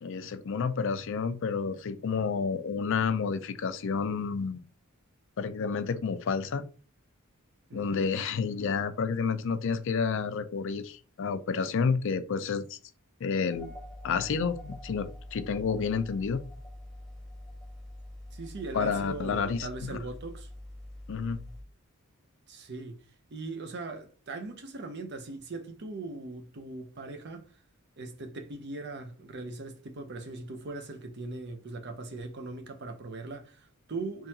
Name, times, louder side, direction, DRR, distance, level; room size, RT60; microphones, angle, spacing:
voice 1, 0.0-4.6 5.4-6.6 7.7-12.8 13.2-13.7 14.0-16.4 18.7-20.0 21.1-21.4, left 5 dB, 60° left, 0.4 m, -30 dB
voice 2, 7.7-8.1 18.3-20.5 22.5-23.0 23.3-27.5 28.0-34.3, right 3 dB, 50° right, 0.7 m, -40 dB
sound 1, 13.5-21.6, left 1 dB, ahead, 1.1 m, -45 dB
3.8 x 3.0 x 2.7 m
head